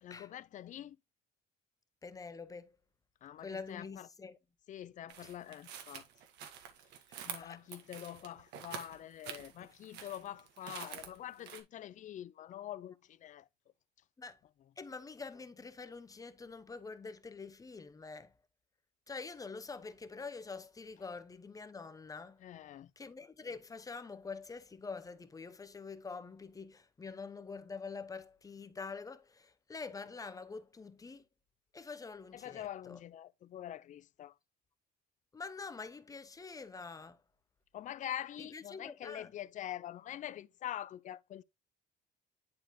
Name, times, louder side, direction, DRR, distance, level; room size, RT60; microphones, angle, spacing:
voice 1, 0.0-1.0 3.2-4.1 4.7-6.1 7.2-13.5 22.4-22.9 32.3-34.3 37.7-41.4, left 11 dB, 50° left, 0.4 m, -45 dB
voice 2, 2.0-2.8 3.4-4.4 5.2-5.3 7.1-7.6 14.2-14.4 14.8-18.3 19.1-22.4 23.0-31.2 31.7-33.0 35.3-37.2 38.4-39.3, left 4 dB, 20° left, 0.8 m, -46 dB
sound 1, 5.1-11.6, right 8 dB, 85° right, 1.5 m, -48 dB
10.5 x 4.1 x 3.0 m
cardioid pair, 110°, 17 cm